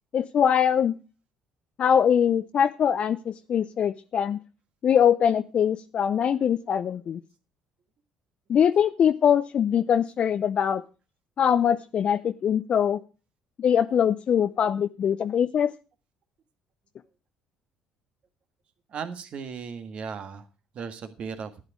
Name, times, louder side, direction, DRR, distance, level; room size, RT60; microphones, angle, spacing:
voice 1, 0.1-0.9 1.8-4.4 4.8-7.2 8.5-10.8 11.4-13.0 13.6-15.7, left 8 dB, 50° left, 11 dB, 0.5 m, -22 dB
voice 2, 18.9-20.5 20.7-21.5, right 6 dB, 55° right, 8 dB, 1.6 m, -36 dB
11.5 x 9.0 x 4.8 m, 0.34 s
hypercardioid pair, 60°, 2 cm